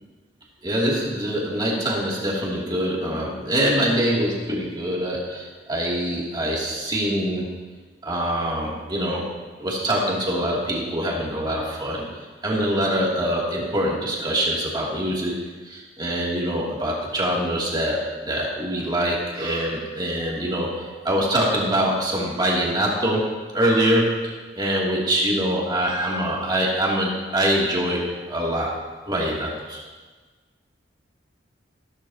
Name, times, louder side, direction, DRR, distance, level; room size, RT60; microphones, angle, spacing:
voice 1, 0.6-7.5 8.0-9.2 9.6-12.0 12.4-15.3 15.7-24.2 24.6-28.7 29.1-29.8, equal, 25° right, -4 dB, 2.8 m, -24 dB
15.5 x 13.0 x 2.9 m, 1.4 s
head